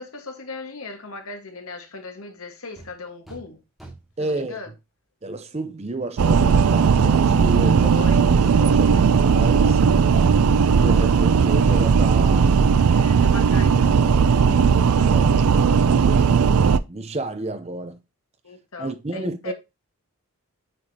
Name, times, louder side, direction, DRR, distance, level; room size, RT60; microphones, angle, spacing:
voice 1, 0.0-3.6 4.2-4.7 7.8-8.3 8.6-9.1 12.9-14.6 18.4-19.5, left 3 dB, 70° left, 1.6 m, -38 dB
sound 1, 2.8-2.9 3.3-3.5 3.8-4.2 6.6-8.0 8.4-8.5 10.2-13.8 14.1-14.2, right 2 dB, ahead, 2.2 m, -44 dB
voice 2, 4.2-4.6 5.2-8.1 8.4-9.8 10.6-12.7 14.9-15.4 15.7-16.4 16.9-18.0 18.8-19.5, right 2 dB, 30° right, 0.6 m, -31 dB
sound 2, 6.2-16.8, right 6 dB, 80° right, 0.4 m, -17 dB
8.7 x 4.9 x 2.8 m
head